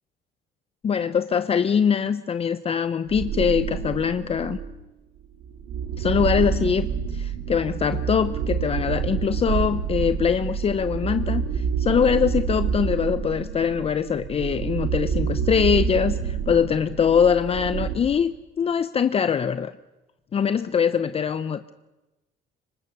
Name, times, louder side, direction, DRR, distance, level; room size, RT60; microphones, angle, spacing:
voice 1, 0.8-4.6 6.0-19.7 20.3-21.7, left 7 dB, 35° left, 12 dB, 0.8 m, -23 dB
sound 1, 3.1-4.8 5.4-18.0, right 7 dB, 85° right, 3.2 m, -28 dB
26.0 x 24.0 x 6.8 m, 1.0 s
cardioid pair, 110°, 17 cm